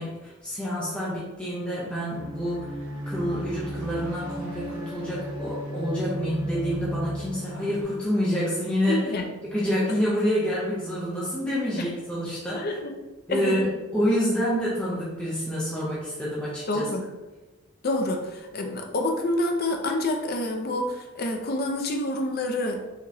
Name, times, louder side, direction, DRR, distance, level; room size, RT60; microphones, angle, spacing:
voice 1, 0.0-2.8 3.1-9.1 9.4-12.8 13.3-16.9, equal, 5° left, -9 dB, 0.7 m, -28 dB
sound 1, 2.1-7.8, equal, 85° right, 1.2 m, -34 dB
voice 2, 8.9-9.3 12.5-12.9 13.3-13.6 16.7-17.1 17.8-22.8, left 1 dB, 45° left, 3 dB, 0.5 m, -27 dB
5.0 x 3.0 x 2.7 m, 1.1 s
head